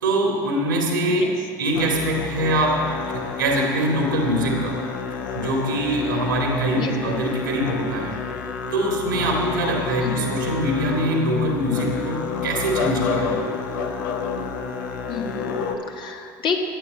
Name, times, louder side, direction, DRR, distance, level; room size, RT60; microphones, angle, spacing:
voice 1, 0.0-1.3 1.6-4.8 5.3-8.2 8.7-13.4, right 1 dB, 85° right, 1 dB, 2.2 m, -23 dB
Musical instrument, 1.7-15.8, left 5 dB, 75° left, 1.1 m, -29 dB
voice 2, 10.0-10.4 15.1-16.6, left 6 dB, 50° left, 2 dB, 1.8 m, -30 dB
12.5 x 8.9 x 7.2 m, 2.1 s
hypercardioid pair, 60°, 10 cm